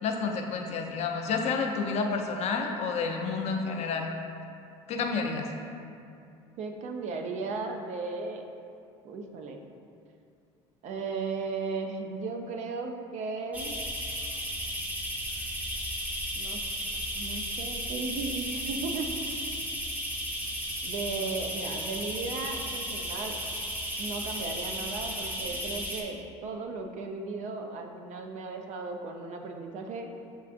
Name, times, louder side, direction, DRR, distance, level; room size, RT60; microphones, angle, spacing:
voice 1, 0.0-4.1 4.9-5.5, left 4 dB, 50° left, 3 dB, 0.5 m, -30 dB
voice 2, 6.6-8.5 9.0-9.6 10.8-13.8 16.3-16.6 17.1-19.5 20.8-23.4 24.0-30.1, right 4 dB, 55° right, 4 dB, 0.5 m, -36 dB
sound 1, 13.5-26.0, equal, 10° right, 0.7 m, -34 dB
6.7 x 2.4 x 2.5 m, 2.5 s
hypercardioid pair, 75°, 14 cm